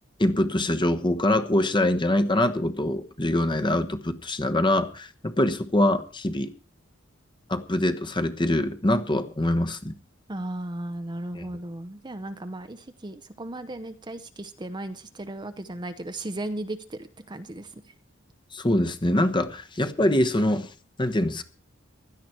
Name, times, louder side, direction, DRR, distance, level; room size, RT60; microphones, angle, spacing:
voice 1, 0.2-6.5 7.5-9.9 11.3-11.5 18.5-20.7 21.0-21.4, left 1 dB, 25° left, 9 dB, 1.2 m, -24 dB
voice 2, 10.3-17.8, right 1 dB, 25° right, 9 dB, 0.8 m, -36 dB
16.5 x 12.0 x 4.5 m, 0.38 s
head